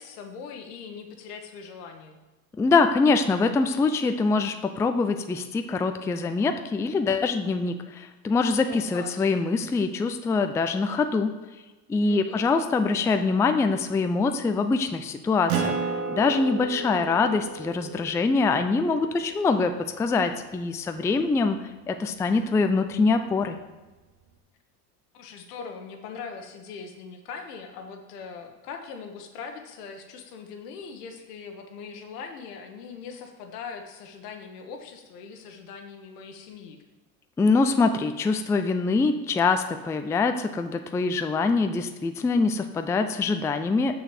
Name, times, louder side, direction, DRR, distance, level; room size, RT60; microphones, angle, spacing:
voice 1, 0.0-2.2 8.7-9.3 12.1-12.5 25.1-36.8, left 5 dB, 80° left, 5 dB, 1.2 m, -41 dB
voice 2, 2.6-11.4 11.9-15.8 16.1-21.6 21.9-23.6 37.4-43.9, left 4 dB, 5° left, 8 dB, 0.3 m, -24 dB
Acoustic guitar, 15.5-20.5, right 5 dB, 75° right, 1.2 m, -33 dB
6.4 x 6.3 x 4.8 m, 1.2 s
hypercardioid pair, 80°, 46 cm